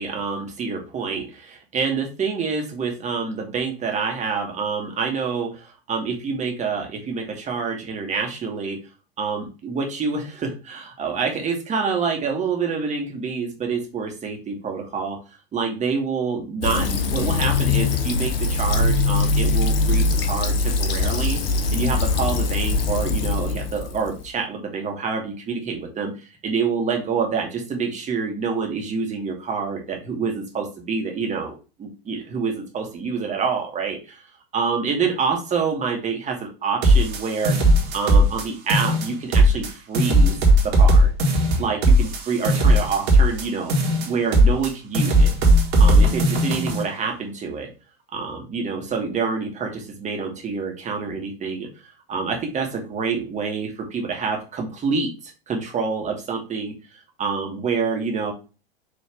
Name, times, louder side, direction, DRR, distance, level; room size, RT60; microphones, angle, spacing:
voice 1, 0.0-8.8 9.2-15.2 15.5-21.4 21.7-34.2 34.5-40.4 40.6-41.1 41.6-43.7 44.0-45.3 45.8-47.7 48.1-51.7 52.1-56.7 57.2-58.3, right 5 dB, 25° right, 2 dB, 1.4 m, -27 dB
Fill (with liquid), 16.6-24.3, left 3 dB, 70° left, 0.8 m, -22 dB
sound 1, 36.8-38.4 38.7-39.7 39.9-43.4 43.7-44.7 44.9-46.8, right 1 dB, 45° right, 1.5 m, -17 dB
4.5 x 3.1 x 3.4 m, 0.32 s
figure-of-eight pair, 90°, 30 cm